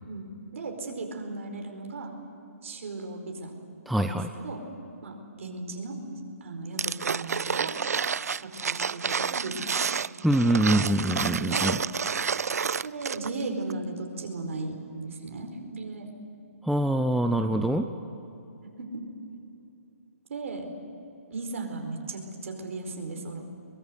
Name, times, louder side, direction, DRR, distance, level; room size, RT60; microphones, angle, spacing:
voice 1, 0.5-2.1 2.6-3.5 3.9-4.6 5.0-6.0 6.4-7.8 8.3-9.6 10.9-11.7 12.8-16.1 17.3-17.7 18.6-19.0 20.3-20.7 21.3-23.4, right 3 dB, 60° right, 3 dB, 4.7 m, -36 dB
voice 2, 3.9-4.3 10.2-11.8 16.6-17.9, right 1 dB, ahead, 6 dB, 0.5 m, -24 dB
sound 1, 6.8-13.4 13.7-13.8, right 6 dB, 85° right, 0.4 m, -29 dB
23.0 x 22.0 x 8.2 m, 2.8 s
hypercardioid pair, 155°, 8 cm